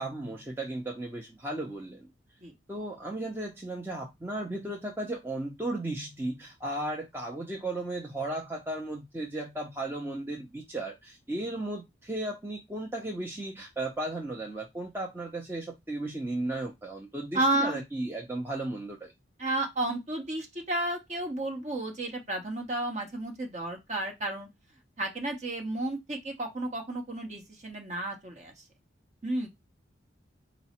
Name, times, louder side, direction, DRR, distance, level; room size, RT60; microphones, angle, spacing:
voice 1, 0.0-2.1 2.7-19.1, right 2 dB, 10° right, 0.5 m, -35 dB
voice 2, 17.3-17.8 19.4-24.5 25.0-28.5 29.2-29.5, right 1 dB, 35° right, 1.0 m, -32 dB
4.6 x 2.1 x 4.1 m
head